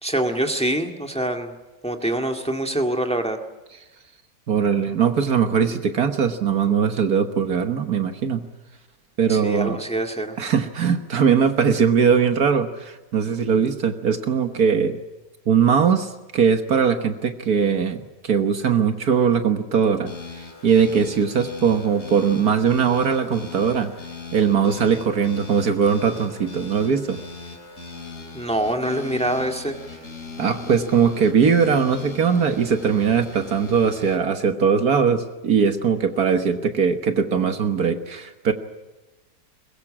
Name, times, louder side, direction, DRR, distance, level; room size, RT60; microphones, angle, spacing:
voice 1, 0.0-1.5 1.8-3.4 9.3-10.3 28.3-29.8, right 1 dB, 5° left, 4 dB, 1.9 m, -25 dB
voice 2, 4.5-8.4 9.2-9.8 10.4-15.0 15.5-23.9 24.3-27.2 30.4-38.5, right 6 dB, 60° right, 8 dB, 1.7 m, -20 dB
sound 1, 20.1-34.2, left 4 dB, 45° left, 3.7 m, -39 dB
22.5 x 21.5 x 8.7 m, 1.1 s
omnidirectional pair, 1.9 m